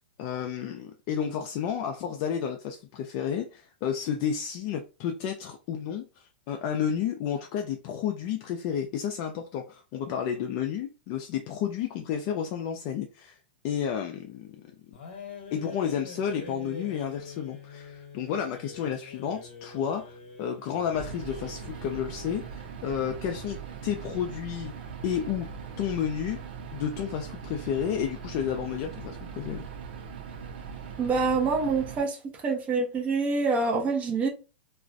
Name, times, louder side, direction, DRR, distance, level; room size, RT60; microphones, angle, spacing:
voice 1, 0.2-13.4 13.6-14.5 15.5-24.7 25.0-25.5 25.8-26.4 26.7-29.6, left 8 dB, 40° left, 0.3 m, -31 dB
sound 1, 14.9-22.6, left 4 dB, 65° left, 0.9 m, -45 dB
sound 2, 20.9-32.0, right 6 dB, 65° right, 0.6 m, -40 dB
voice 2, 31.0-32.2 32.4-34.3, right 4 dB, 25° right, 0.7 m, -26 dB
2.3 x 2.1 x 2.5 m
hypercardioid pair, 135°, 6 cm